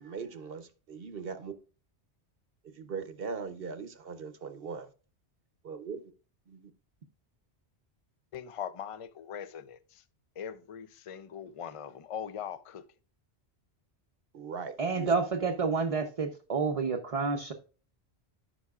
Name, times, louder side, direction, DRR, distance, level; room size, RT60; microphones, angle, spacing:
voice 1, 0.0-1.5 2.6-4.9 5.6-6.1 6.5-6.7 14.3-15.1, right 5 dB, 60° right, 1.0 m, -40 dB
voice 2, 8.3-10.0 10.4-12.9, left 8 dB, 40° left, 0.5 m, -41 dB
voice 3, 14.8-17.5, right 4 dB, 35° right, 0.7 m, -29 dB
14.0 x 5.6 x 2.4 m
omnidirectional pair, 1.1 m